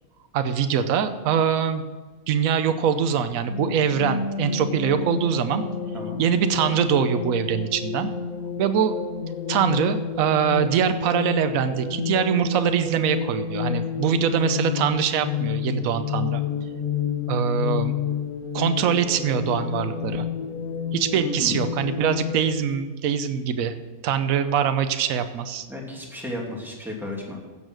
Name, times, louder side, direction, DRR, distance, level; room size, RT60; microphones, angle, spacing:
voice 1, 0.3-1.8 2.3-5.6 6.2-8.1 8.6-8.9 9.5-16.4 17.3-18.0 18.5-20.2 20.9-23.7 24.0-25.7, right 8 dB, 75° right, 9 dB, 1.2 m, -23 dB
sound 1, 3.5-22.7, left 7 dB, 80° left, 1.7 m, -30 dB
voice 2, 21.1-21.7 25.7-27.4, left 2 dB, ahead, -2 dB, 2.6 m, -33 dB
15.5 x 7.3 x 6.3 m, 1.3 s
omnidirectional pair, 1.5 m